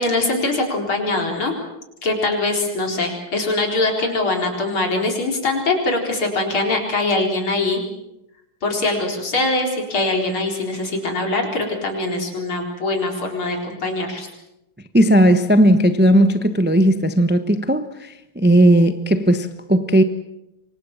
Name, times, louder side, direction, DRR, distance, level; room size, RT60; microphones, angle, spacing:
voice 1, 0.0-1.6 2.0-7.8 8.6-14.3, left 2 dB, 85° left, 5.1 m, -22 dB
voice 2, 14.9-20.0, right 1 dB, 10° right, 0.7 m, -16 dB
27.0 x 24.0 x 7.4 m
omnidirectional pair, 2.2 m